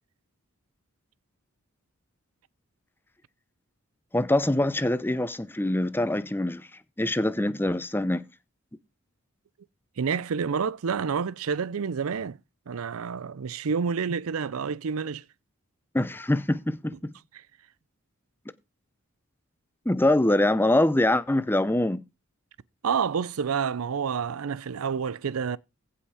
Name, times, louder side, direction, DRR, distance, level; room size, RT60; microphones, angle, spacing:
voice 1, 4.1-6.7 7.0-8.2 15.9-17.1 19.9-22.0, left 1 dB, 10° left, 0.7 m, -24 dB
voice 2, 10.0-12.4 12.7-15.2 17.3-17.4 22.8-25.6, right 6 dB, 80° right, 0.5 m, -28 dB
15.5 x 5.6 x 4.9 m
head